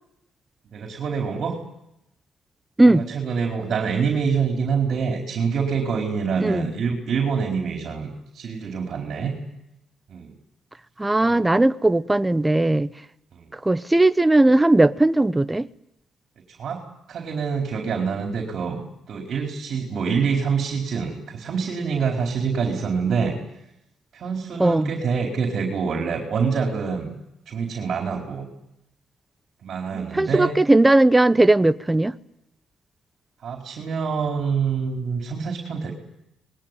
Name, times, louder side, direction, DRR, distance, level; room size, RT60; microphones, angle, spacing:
voice 1, 0.7-1.6 2.9-9.3 10.1-10.3 11.2-11.4 13.3-13.5 16.5-16.8 17.1-18.8 19.1-23.4 24.1-27.1 27.5-28.5 29.6-30.5 33.4-35.9, right 6 dB, 60° right, 4.5 m, -26 dB
voice 2, 11.0-12.9 13.5-15.7 24.6-24.9 29.9-32.2, right 2 dB, 15° right, 0.9 m, -18 dB
26.5 x 21.0 x 9.3 m
cardioid pair, 90°, 0 cm